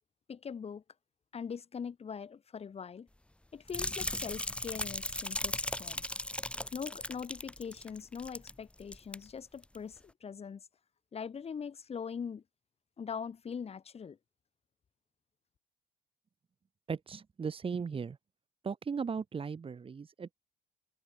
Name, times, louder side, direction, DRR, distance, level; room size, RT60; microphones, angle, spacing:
voice 1, 0.3-0.8 1.3-3.1 3.5-6.0 6.7-10.7 11.1-12.4 13.0-14.2, left 6 dB, 35° left, 6.6 m, -42 dB
sound 1, 3.7-8.5 8.8-9.2 9.6-9.8, left 1 dB, 5° left, 2.4 m, -37 dB
voice 2, 16.9-18.2 18.6-20.3, right 5 dB, 30° right, 5.7 m, -37 dB
cardioid pair, 110°, 17 cm